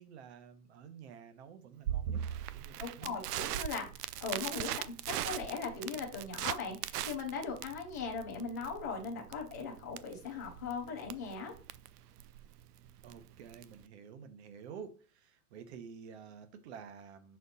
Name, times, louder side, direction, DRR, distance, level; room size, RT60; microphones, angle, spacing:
voice 1, 0.0-2.2 2.5-3.2 13.0-17.4, right 7 dB, 45° right, 1.0 m, -50 dB
Crackle, 1.9-13.8, right 11 dB, 80° right, 0.6 m, -40 dB
voice 2, 2.8-11.5, left 4 dB, 15° left, 0.4 m, -39 dB
6.1 x 4.4 x 4.1 m
supercardioid pair, 165°, 46 cm